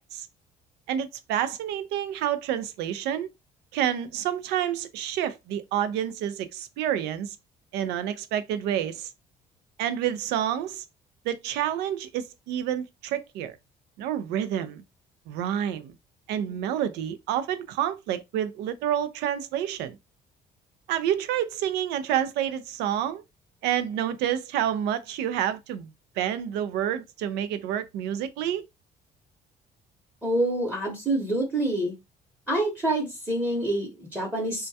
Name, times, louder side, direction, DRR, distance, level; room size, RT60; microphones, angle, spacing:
voice 1, 0.9-3.3 3.7-7.4 7.7-9.1 9.8-10.8 11.2-13.6 14.0-14.8 15.3-16.0 16.3-19.9 20.9-23.2 23.6-25.9 26.2-28.7, right 10 dB, 85° right, 0.4 m, -28 dB
voice 2, 30.2-31.9 32.5-34.7, right 1 dB, 10° right, 0.8 m, -27 dB
2.2 x 2.2 x 2.6 m
cardioid pair, 110°, 17 cm